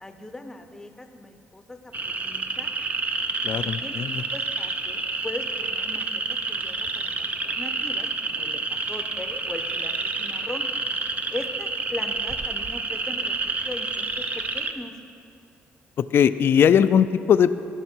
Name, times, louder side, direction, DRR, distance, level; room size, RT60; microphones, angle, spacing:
voice 1, 0.0-2.7 3.6-4.0 4.3-6.1 6.5-10.7 11.3-13.9 14.2-15.0, left 2 dB, 10° left, 7 dB, 0.7 m, -39 dB
sound 1, 1.9-14.7, right 3 dB, 35° right, 0.6 m, -29 dB
voice 2, 3.4-4.2 16.1-17.5, left 8 dB, 60° left, 13 dB, 0.4 m, -19 dB
16.0 x 5.5 x 4.5 m, 2.5 s
cardioid pair, 95°, 4 cm